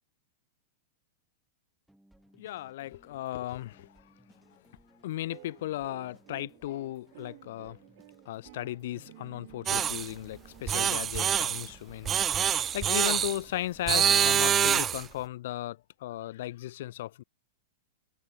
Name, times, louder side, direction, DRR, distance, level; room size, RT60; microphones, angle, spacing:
sound 1, 1.9-14.8, right 1 dB, ahead, 6.4 m, -62 dB
voice 1, 2.4-4.0 4.5-4.6 5.0-7.8 8.2-17.2, left 14 dB, 65° left, 1.7 m, -36 dB
sound 2, 5.3-11.8, right 21 dB, 55° right, 6.3 m, -53 dB
sound 3, 9.7-10.1 10.7-11.7 12.1-13.4 13.9-15.1, right 9 dB, 20° right, 0.3 m, -25 dB
supercardioid pair, 150°, 0 cm